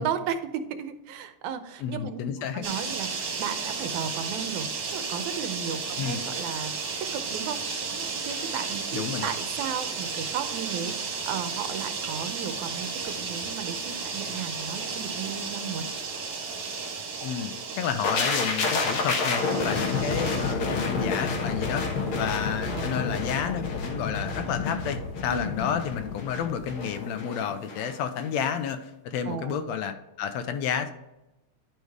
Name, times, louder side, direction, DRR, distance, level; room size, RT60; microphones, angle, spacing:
voice 1, 0.0-2.2 2.5-15.9 22.7-23.0 25.3-25.4 29.3-29.6, right 8 dB, 85° right, 9 dB, 2.1 m, -35 dB
voice 2, 1.8-2.6 6.0-6.2 8.9-9.3 17.2-21.9 22.2-30.9, left 8 dB, 80° left, 9 dB, 1.8 m, -31 dB
sound 1, 2.6-20.5, right 4 dB, 60° right, 2.6 m, -33 dB
sound 2, 18.0-27.9 28.2-28.4, left 4 dB, 55° left, 1.8 m, -29 dB
10.5 x 4.7 x 3.5 m, 0.97 s
omnidirectional pair, 3.3 m